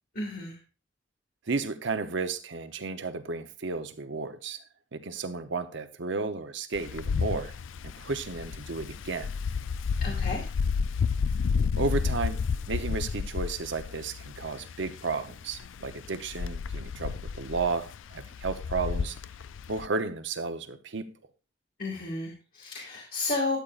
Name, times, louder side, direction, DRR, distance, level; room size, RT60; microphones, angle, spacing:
voice 1, 0.2-0.6 10.0-10.5 21.8-23.6, left 2 dB, 50° left, 2.3 m, -32 dB
voice 2, 1.5-4.6 4.9-7.6 7.8-9.3 11.8-19.2 19.7-21.1, right 4 dB, 65° right, 0.9 m, -33 dB
Wind, 6.7-19.9, left 5 dB, 75° left, 0.4 m, -31 dB
12.5 x 8.4 x 2.5 m
head